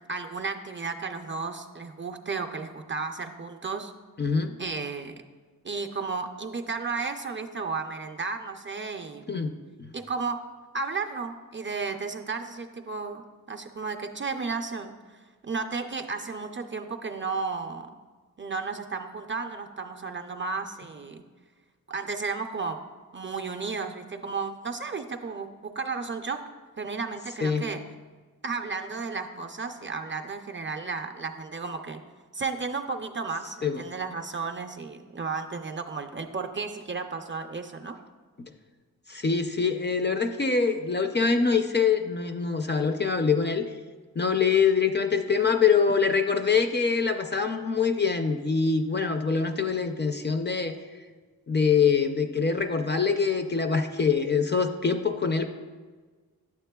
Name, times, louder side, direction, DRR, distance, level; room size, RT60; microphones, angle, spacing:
voice 1, 0.1-3.9 4.6-5.1 5.6-9.3 9.9-10.4 10.7-17.9 18.4-21.2 21.9-22.8 23.1-26.4 26.8-27.8 28.4-32.0 32.3-38.0, right 4 dB, 35° right, 5 dB, 0.4 m, -33 dB
voice 2, 4.2-4.5 9.3-9.5 27.4-27.6 33.6-33.8 39.1-43.7 44.2-50.8 51.5-55.5, left 5 dB, 30° left, 6 dB, 0.4 m, -24 dB
9.1 x 7.3 x 2.2 m, 1.4 s
wide cardioid pair, 75°, 36 cm